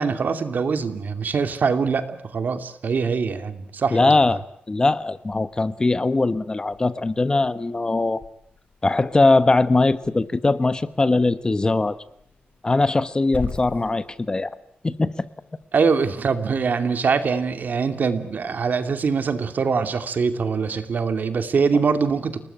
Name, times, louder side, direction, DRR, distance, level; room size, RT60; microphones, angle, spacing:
voice 1, 0.0-4.1 15.7-22.4, right 5 dB, 60° right, 9 dB, 2.7 m, -23 dB
voice 2, 3.9-8.2 8.8-12.0 12.6-14.5 14.8-15.2 21.7-21.8, left 3 dB, 25° left, 14 dB, 1.1 m, -21 dB
Growling / Hiss, 4.9-15.7, left 5 dB, 60° left, 4.4 m, -43 dB
30.0 x 19.5 x 9.0 m, 0.72 s
wide cardioid pair, 135°, 3 cm